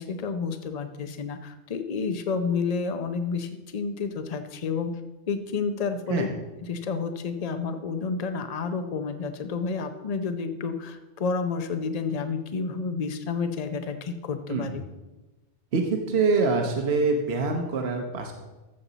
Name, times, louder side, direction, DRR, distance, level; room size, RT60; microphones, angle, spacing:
voice 1, 0.0-4.9 5.3-6.3 6.7-14.8, left 5 dB, 40° left, 8 dB, 0.7 m, -30 dB
voice 2, 15.7-18.3, right 4 dB, 65° right, 3 dB, 1.2 m, -25 dB
14.0 x 7.0 x 4.0 m, 1.1 s
omnidirectional pair, 1.2 m